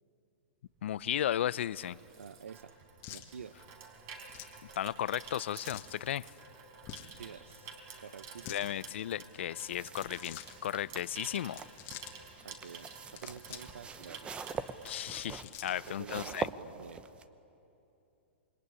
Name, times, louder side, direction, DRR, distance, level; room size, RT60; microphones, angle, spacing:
voice 1, 0.8-2.0 4.8-6.3 8.5-11.6 14.8-16.5, left 11 dB, 70° left, 0.6 m, -35 dB
Water tap faucet / Sink (filling or washing), 0.8-15.9 16.2-16.4, right 5 dB, 40° right, 4.3 m, -51 dB
voice 2, 2.2-2.7 3.1-3.6 7.2-7.7 8.0-8.7 12.4-12.9 13.1-14.3 15.7-17.0, right 7 dB, 90° right, 0.9 m, -48 dB
sound 1, 3.0-3.3 4.3-4.6 5.6-5.9 6.8-7.2 8.2-8.7 9.8-10.5 11.4-12.1 13.0-13.7 14.0-14.1 15.0-15.9, left 13 dB, 35° left, 1.8 m, -48 dB
sound 2, 9.6-17.2, right 5 dB, 15° right, 0.9 m, -44 dB
27.0 x 22.5 x 9.8 m
hypercardioid pair, 135°, 7 cm